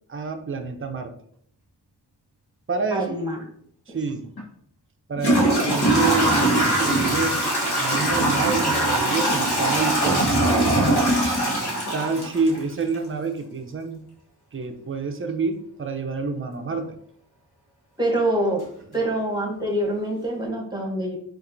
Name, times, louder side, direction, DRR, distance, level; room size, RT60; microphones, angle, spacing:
voice 1, 0.1-1.1 2.7-3.2 3.9-4.3 5.1-7.4 7.8-10.5 11.4-14.0 14.5-17.0, right 4 dB, 30° right, 6 dB, 0.5 m, -28 dB
voice 2, 2.9-3.4 3.9-4.0 18.0-18.7 18.9-21.2, right 1 dB, 10° right, 1 dB, 1.0 m, -25 dB
Toilet flush / Trickle dribble, 4.4-4.5 5.2-13.0, right 1 dB, 65° left, 1.3 m, -21 dB
4.2 x 2.6 x 2.6 m, 0.64 s
cardioid pair, 50°, 41 cm